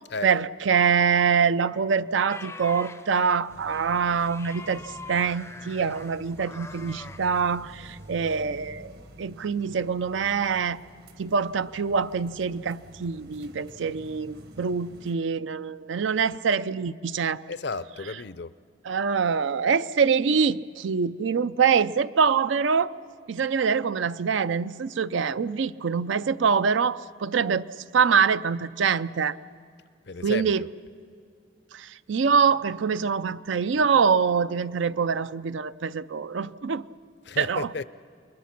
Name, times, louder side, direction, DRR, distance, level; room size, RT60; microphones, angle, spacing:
voice 1, 0.2-10.8 11.2-17.4 18.9-23.0 23.3-27.7 27.9-29.4 30.2-30.6 31.7-36.8 37.4-37.7, right 6 dB, 80° right, 0.5 m, -24 dB
sound 1, 2.3-7.9 8.2-8.4, left 3 dB, 15° left, 0.5 m, -43 dB
sound 2, 3.5-15.1, right 1 dB, 55° right, 1.2 m, -48 dB
voice 2, 17.5-18.5 30.0-30.7 37.2-37.8, left 4 dB, 60° left, 0.6 m, -33 dB
29.0 x 21.5 x 6.0 m
head